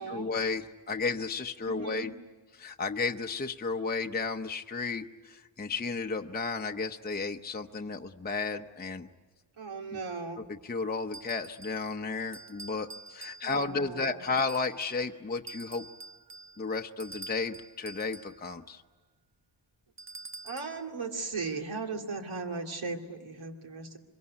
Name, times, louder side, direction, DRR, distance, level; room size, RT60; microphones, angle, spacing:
voice 1, 0.0-2.1 2.5-9.1 9.9-10.0 10.5-15.8 16.6-18.8, left 4 dB, 20° left, 4 dB, 0.8 m, -33 dB
voice 2, 1.7-2.1 9.6-10.4 13.4-14.2 20.4-24.0, right 4 dB, 80° right, 3 dB, 2.8 m, -37 dB
sound 1, 11.1-11.9 12.3-13.8 14.4-15.1 15.5-18.4 20.0-20.8, right 3 dB, 35° right, 0.8 m, -47 dB
25.5 x 22.5 x 9.7 m, 1.3 s
wide cardioid pair, 135°, 47 cm